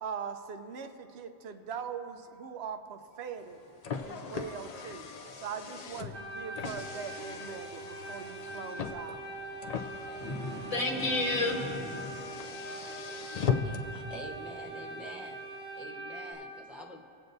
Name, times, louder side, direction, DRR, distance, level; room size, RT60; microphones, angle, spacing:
voice 1, 0.0-3.6 4.0-9.2, right 7 dB, 70° right, 7 dB, 0.9 m, -41 dB
Car, 3.4-14.0, left 6 dB, 50° left, 0.5 m, -39 dB
sound 1, 6.1-16.3, right 2 dB, 40° right, 1.9 m, -42 dB
voice 2, 10.2-12.2, left 2 dB, 85° left, -1 dB, 1.5 m, -31 dB
voice 3, 13.6-15.4 15.7-17.0, left 1 dB, ahead, -1 dB, 0.6 m, -46 dB
21.5 x 7.8 x 2.7 m, 2.7 s
omnidirectional pair, 1.2 m